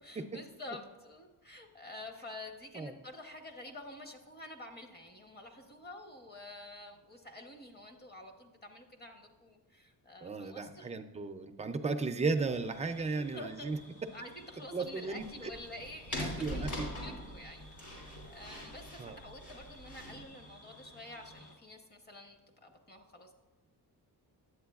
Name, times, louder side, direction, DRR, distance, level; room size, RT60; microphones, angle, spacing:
voice 1, 0.0-10.9 12.9-13.7 14.1-23.3, left 1 dB, 25° left, 4 dB, 0.8 m, -49 dB
voice 2, 10.2-13.8 14.7-15.2 16.2-16.7 19.0-19.2, right 4 dB, 20° right, 7 dB, 0.3 m, -35 dB
sound 1, 12.3-21.6, left 1 dB, 65° left, 2.1 m, -56 dB
sound 2, 15.2-20.2, left 1 dB, 50° left, 2.6 m, -42 dB
10.0 x 8.0 x 2.3 m, 1.2 s
wide cardioid pair, 150°, 39 cm